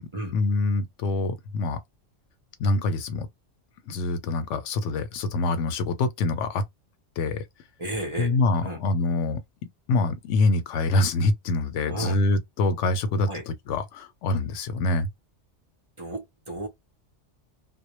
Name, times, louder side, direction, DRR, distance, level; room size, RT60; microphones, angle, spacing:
voice 1, 0.0-1.8 2.6-3.3 3.9-6.6 7.2-7.4 8.2-9.4 9.9-15.1, left 3 dB, 80° left, 0.9 m, -25 dB
voice 2, 7.8-8.4 8.6-8.8 11.8-12.2 13.3-13.5 16.0-16.7, right 1 dB, 30° right, 0.7 m, -33 dB
2.1 x 2.1 x 2.9 m
omnidirectional pair, 1.2 m